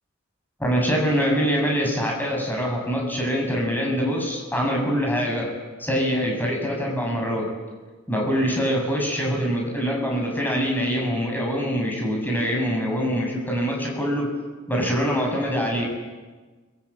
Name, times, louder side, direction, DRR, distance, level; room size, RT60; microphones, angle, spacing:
voice 1, 0.6-5.5 5.8-7.5 8.1-14.3 14.7-15.8, equal, 10° left, 0 dB, 7.6 m, -24 dB
29.5 x 22.5 x 8.8 m, 1.3 s
head